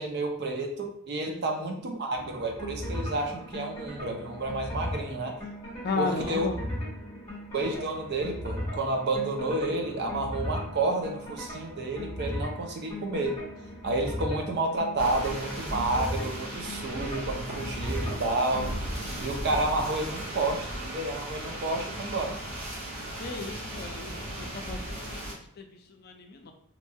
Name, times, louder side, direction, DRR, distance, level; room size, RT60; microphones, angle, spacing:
voice 1, 0.0-5.4 6.0-6.5 7.5-13.4 13.8-18.7 19.2-22.4, right 2 dB, 50° right, 2 dB, 0.5 m, -30 dB
sound 1, 2.1-18.7, equal, 15° left, 1.2 m, -37 dB
voice 2, 5.8-6.6 23.2-26.5, left 3 dB, 50° left, 3 dB, 0.4 m, -35 dB
sound 2, 15.0-25.3, right 1 dB, 70° right, 1.0 m, -36 dB
2.9 x 2.3 x 2.7 m, 0.67 s
head